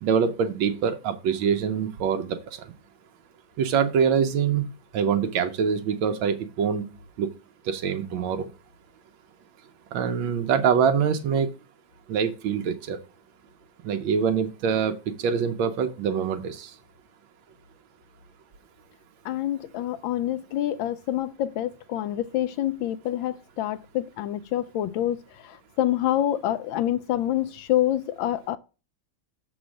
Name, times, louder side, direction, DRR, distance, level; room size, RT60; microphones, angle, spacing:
voice 1, 0.0-2.3 2.6-2.7 3.6-4.7 4.9-6.8 7.2-7.3 7.7-8.5 9.9-11.5 12.1-13.0 13.8-16.7, right 7 dB, 85° right, 1.5 m, -24 dB
voice 2, 19.2-28.6, left 12 dB, 80° left, 1.3 m, -27 dB
7.1 x 4.0 x 6.2 m
omnidirectional pair, 2.1 m